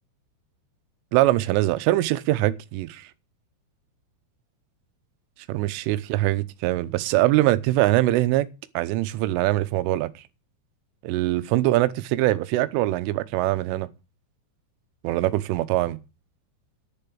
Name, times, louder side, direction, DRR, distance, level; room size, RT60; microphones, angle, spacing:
voice 1, 1.1-3.1 5.5-8.5 8.8-10.1 11.0-13.9 15.0-16.0, right 16 dB, 90° right, 3.3 m, -23 dB
10.5 x 6.8 x 8.6 m
omnidirectional pair, 5.6 m